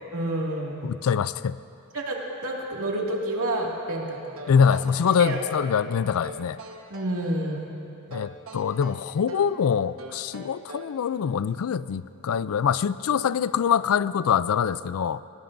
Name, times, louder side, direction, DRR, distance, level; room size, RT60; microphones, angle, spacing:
voice 1, 0.1-0.8 1.9-4.8 5.2-5.4 6.9-7.8, right 1 dB, 85° right, -2 dB, 2.2 m, -29 dB
voice 2, 0.8-1.6 4.5-6.6 8.1-15.2, left 7 dB, 75° left, 16 dB, 0.4 m, -24 dB
sound 1, 4.4-5.8 6.2-7.2 8.1-9.6 10.0-11.0, right 1 dB, 70° right, 1.2 m, -43 dB
22.0 x 19.0 x 2.6 m, 2.8 s
head